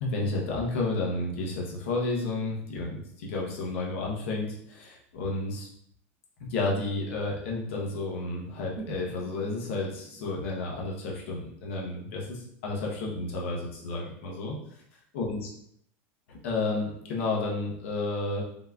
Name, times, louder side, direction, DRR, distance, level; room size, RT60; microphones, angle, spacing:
voice 1, 0.0-5.7 6.4-14.5 15.1-15.5 16.3-18.4, left 2 dB, 80° left, -2 dB, 1.0 m, -31 dB
sound 1, 8.8-12.7 13.0-13.1, right 3 dB, 50° right, 0.6 m, -48 dB
4.1 x 2.2 x 2.4 m, 0.69 s
supercardioid pair, 120°, 7 cm